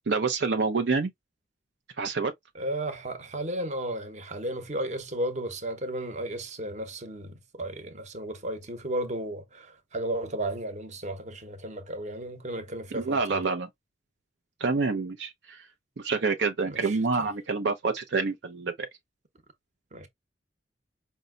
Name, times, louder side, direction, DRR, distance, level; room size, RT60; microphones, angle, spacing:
voice 1, 0.1-1.1 2.0-2.3 12.9-13.7 14.6-15.7 16.0-18.9, right 4 dB, 75° right, 0.6 m, -27 dB
voice 2, 2.5-13.4 16.6-17.3 19.9-20.1, right 1 dB, 45° right, 1.0 m, -34 dB
5.3 x 2.2 x 3.8 m
head